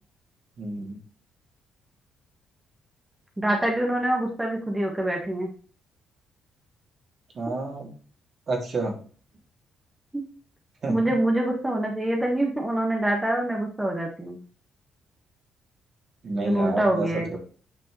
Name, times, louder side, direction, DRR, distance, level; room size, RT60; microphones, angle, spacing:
voice 1, 0.6-1.0 7.3-7.9 8.5-9.0 10.8-10.9 16.2-17.4, right 2 dB, 50° right, 0 dB, 2.9 m, -29 dB
voice 2, 3.4-5.5 10.1-10.2 10.9-14.4 16.4-17.4, right 1 dB, 10° right, 0 dB, 1.6 m, -25 dB
9.0 x 5.2 x 3.2 m, 0.41 s
cardioid pair, 90°, 0 cm